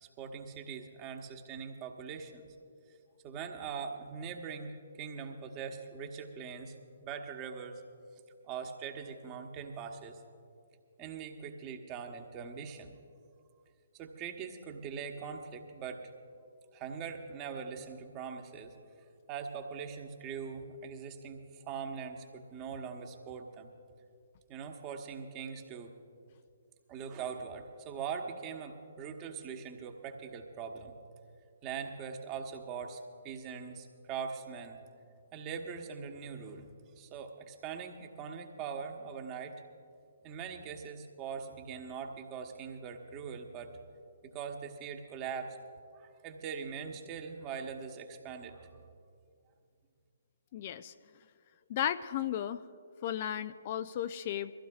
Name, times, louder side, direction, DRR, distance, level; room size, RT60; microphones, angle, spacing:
voice 1, 0.0-2.5 3.2-6.7 7.0-7.8 8.4-10.2 11.0-13.0 13.9-16.1 16.7-18.7 19.3-23.7 24.5-25.9 26.9-30.9 31.6-33.0 33.2-34.8 35.3-36.7 37.0-39.5 40.2-43.7 44.2-45.6 45.9-48.8, right 6 dB, 25° right, 4 dB, 1.1 m, -42 dB
voice 2, 50.5-50.9 51.7-52.6 53.0-54.5, left 10 dB, 40° left, 12 dB, 0.3 m, -34 dB
23.5 x 15.5 x 2.4 m, 2.3 s
figure-of-eight pair, 135°, 0 cm